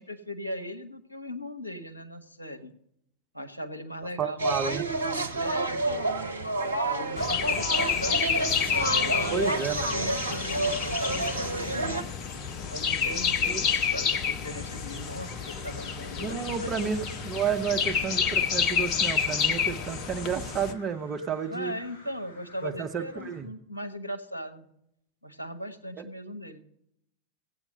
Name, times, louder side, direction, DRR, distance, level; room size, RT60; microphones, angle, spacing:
voice 1, 0.0-2.7 3.3-5.7 6.6-8.6 9.1-9.5 9.9-12.1 12.7-16.8 21.5-24.7 25.2-26.6, equal, 85° left, 5 dB, 1.1 m, -38 dB
voice 2, 4.2-4.9 9.3-10.1 13.4-13.6 16.2-21.7 22.6-23.5, right 7 dB, 30° right, 6 dB, 0.9 m, -31 dB
sound 1, 4.4-12.0, right 2 dB, 75° right, 0.8 m, -29 dB
sound 2, 7.2-20.7, left 6 dB, 35° left, 1.0 m, -29 dB
Crow, 13.3-23.4, left 1 dB, 60° left, 6.3 m, -54 dB
16.0 x 8.6 x 5.4 m, 0.76 s
figure-of-eight pair, 90°, 0 cm